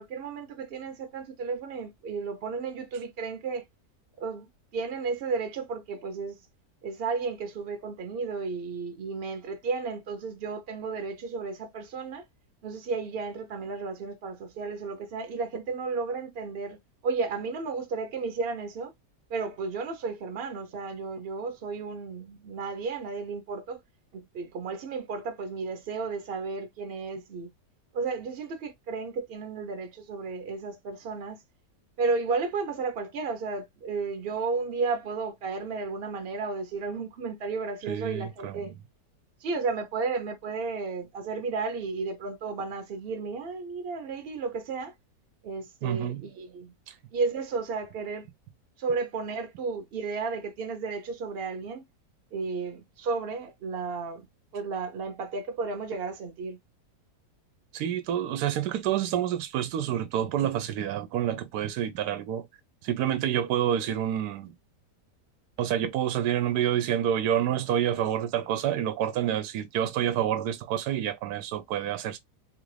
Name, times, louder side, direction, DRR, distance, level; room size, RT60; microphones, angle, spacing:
voice 1, 0.0-3.6 4.2-6.4 6.8-12.2 12.6-16.8 17.0-18.9 19.3-23.8 24.1-27.5 27.9-31.4 32.0-38.7 39.4-44.9 45.4-46.7 47.1-48.3 48.8-51.8 52.3-54.3 54.5-56.6 63.7-63.9, right 4 dB, 45° right, 0.9 m, -33 dB
voice 2, 37.9-38.5 45.8-46.2 57.7-62.5 62.8-64.5 65.6-72.2, right 10 dB, 75° right, 1.2 m, -28 dB
3.7 x 2.5 x 3.2 m
omnidirectional pair, 1.8 m